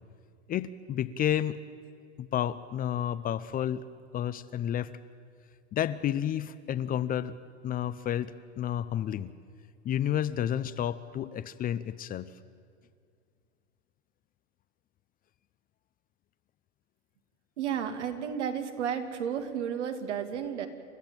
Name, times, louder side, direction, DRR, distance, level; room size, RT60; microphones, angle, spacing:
voice 1, 0.5-1.6 2.2-3.8 4.1-4.9 5.7-7.4 7.6-9.3 9.8-12.3, left 10 dB, 25° left, 14 dB, 0.6 m, -31 dB
voice 2, 17.6-20.7, right 8 dB, 80° right, 6 dB, 2.5 m, -32 dB
29.0 x 13.5 x 8.9 m, 2.2 s
hypercardioid pair, 115°, 35 cm